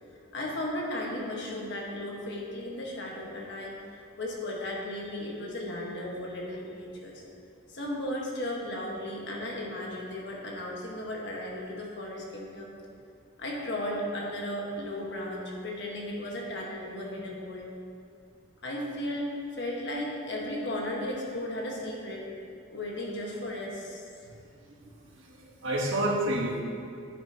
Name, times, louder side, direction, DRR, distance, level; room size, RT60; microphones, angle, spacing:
voice 1, 0.3-7.2 7.7-12.7 13.4-17.7 18.6-22.2 22.7-24.0, left 1 dB, 60° left, -2 dB, 1.5 m, -35 dB
voice 2, 25.2-26.6, right 1 dB, 70° right, -2 dB, 1.4 m, -29 dB
9.7 x 9.2 x 2.9 m, 2.5 s
head